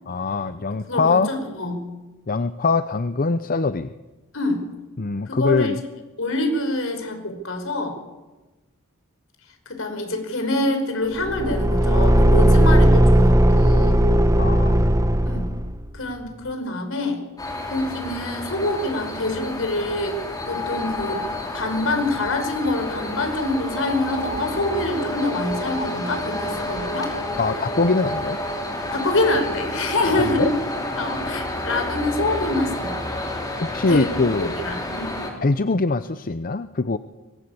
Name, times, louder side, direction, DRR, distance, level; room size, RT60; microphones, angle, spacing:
voice 1, 0.1-1.3 2.3-3.9 5.0-5.8 14.4-14.8 27.4-28.4 30.0-30.5 33.6-34.5 35.4-37.0, left 3 dB, 40° left, 12 dB, 0.7 m, -22 dB
voice 2, 0.7-1.9 4.3-4.6 5.3-5.8 6.2-8.0 9.7-14.0 15.2-15.5 15.9-17.2 17.7-20.2 20.5-21.2 21.5-27.2 28.9-30.5 31.0-33.4 33.9-34.1 34.4-35.2, left 2 dB, 65° left, 6 dB, 5.3 m, -26 dB
Car / Engine, 11.2-15.8, right 1 dB, 15° right, 1.1 m, -16 dB
sound 1, 17.4-35.3, left 1 dB, 15° left, 4.8 m, -30 dB
sound 2, 24.1-30.9, right 2 dB, 35° right, 8.0 m, -37 dB
24.0 x 20.0 x 8.6 m, 1.2 s
head